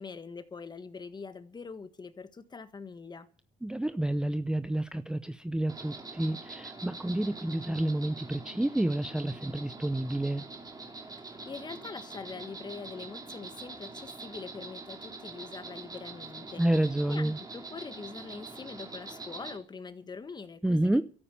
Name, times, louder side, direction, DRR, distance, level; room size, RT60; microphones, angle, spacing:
voice 1, 0.0-3.3 11.2-16.6 17.0-21.0, left 4 dB, 25° left, 1.5 m, -43 dB
voice 2, 3.6-10.4 16.6-17.4 20.6-21.0, right 1 dB, 5° right, 0.6 m, -29 dB
Insect, 5.7-19.6, right 3 dB, 20° right, 2.8 m, -44 dB
13.0 x 8.8 x 8.6 m
cardioid pair, 110°, 17 cm